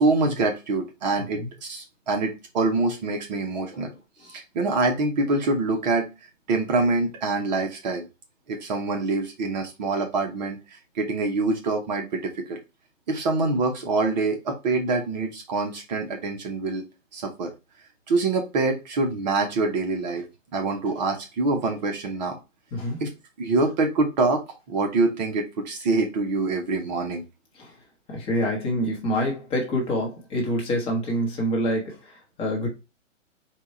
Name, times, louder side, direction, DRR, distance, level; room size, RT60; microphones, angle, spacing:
voice 1, 0.0-3.9 4.3-8.1 8.5-12.6 13.1-16.8 17.1-17.5 18.1-20.2 20.5-22.4 23.0-23.1 23.4-24.4 24.7-27.2, right 3 dB, 35° right, 0.7 m, -25 dB
voice 2, 22.7-23.0 27.5-27.7 28.1-32.7, equal, 15° left, 0.9 m, -27 dB
4.5 x 2.3 x 4.1 m
hypercardioid pair, 140°, 39 cm